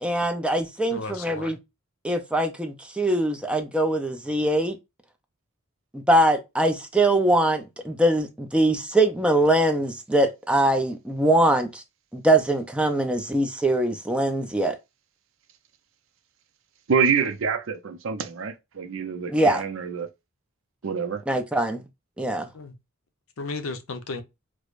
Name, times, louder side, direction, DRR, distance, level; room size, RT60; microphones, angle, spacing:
voice 1, 0.0-1.6 2.0-4.8 5.9-11.8 12.1-14.7 19.3-19.6 21.3-21.8 22.2-22.5, right 1 dB, 5° right, 0.4 m, -22 dB
voice 2, 0.9-1.6 22.5-22.7 23.4-24.2, left 3 dB, 75° left, 0.6 m, -34 dB
voice 3, 16.9-20.1 20.8-21.2, right 6 dB, 65° right, 0.5 m, -26 dB
4.7 x 2.1 x 2.4 m
head